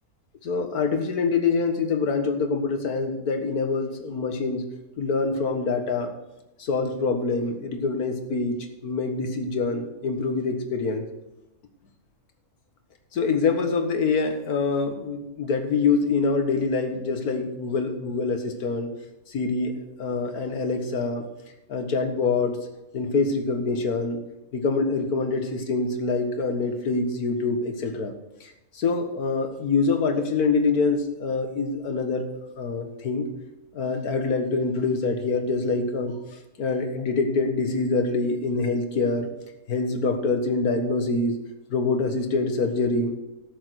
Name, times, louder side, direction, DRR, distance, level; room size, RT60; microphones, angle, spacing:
voice 1, 0.4-4.6 5.0-6.1 6.6-8.6 8.8-11.1 13.1-18.9 19.3-19.7 20.0-21.2 21.7-22.6 22.9-24.2 24.5-28.1 28.8-32.2 32.6-33.3 33.7-36.1 36.6-39.3 39.7-41.3 41.7-43.1, left 4 dB, 85° left, 6 dB, 1.9 m, -25 dB
13.0 x 7.0 x 6.3 m, 0.96 s
omnidirectional pair, 1.6 m